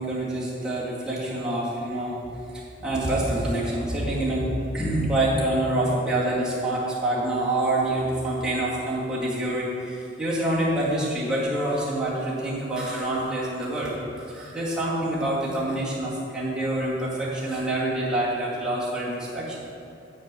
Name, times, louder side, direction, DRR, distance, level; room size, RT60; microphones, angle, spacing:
voice 1, 0.0-2.2 2.8-13.9 14.3-19.6, right 1 dB, 5° right, -9 dB, 2.2 m, -26 dB
10.0 x 4.6 x 7.6 m, 2.6 s
head